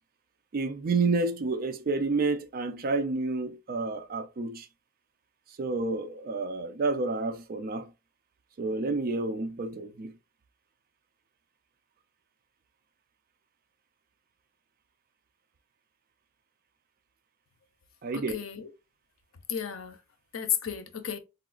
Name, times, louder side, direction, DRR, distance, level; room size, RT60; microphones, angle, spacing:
voice 1, 0.5-4.7 5.6-7.9 8.6-10.1 18.0-18.4, right 3 dB, 45° right, 0.4 m, -29 dB
voice 2, 18.1-18.7 19.5-20.0 20.3-21.2, left 9 dB, 75° left, 0.6 m, -33 dB
3.9 x 2.4 x 2.3 m
head